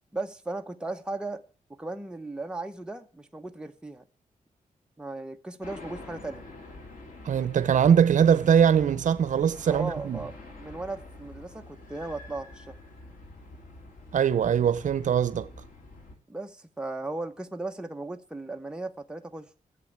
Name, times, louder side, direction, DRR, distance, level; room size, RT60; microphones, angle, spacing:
voice 1, 0.1-1.4 1.7-4.0 5.0-6.5 9.7-12.7 16.3-19.5, right 2 dB, 5° right, 0.9 m, -36 dB
sound 1, 5.6-16.1, left 2 dB, 75° left, 3.9 m, -46 dB
voice 2, 7.2-10.2 14.1-15.5, right 8 dB, 65° right, 0.8 m, -22 dB
14.0 x 8.1 x 8.6 m
wide cardioid pair, 160°, 14 cm